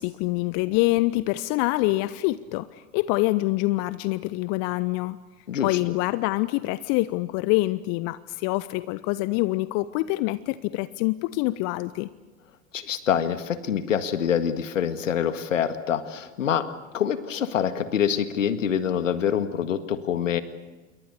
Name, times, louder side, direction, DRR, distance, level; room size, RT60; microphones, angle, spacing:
voice 1, 0.0-5.2 5.6-12.1, left 19 dB, 40° left, 16 dB, 0.8 m, -25 dB
voice 2, 5.5-5.8 12.7-16.7 16.9-20.4, left 8 dB, 70° left, 11 dB, 1.9 m, -25 dB
28.0 x 23.0 x 6.8 m, 1.2 s
figure-of-eight pair, 85°, 39 cm